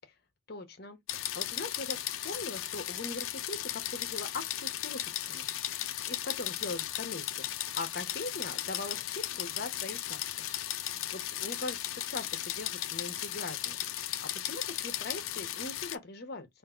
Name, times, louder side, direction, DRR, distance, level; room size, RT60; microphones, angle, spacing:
voice 1, 0.5-5.7 6.0-7.5 7.8-10.3 10.7-13.8 14.2-16.5, left 2 dB, 50° left, 0.8 m, -41 dB
sound 1, 1.1-16.0, left 13 dB, 80° left, 0.4 m, -36 dB
3.5 x 2.6 x 3.6 m
head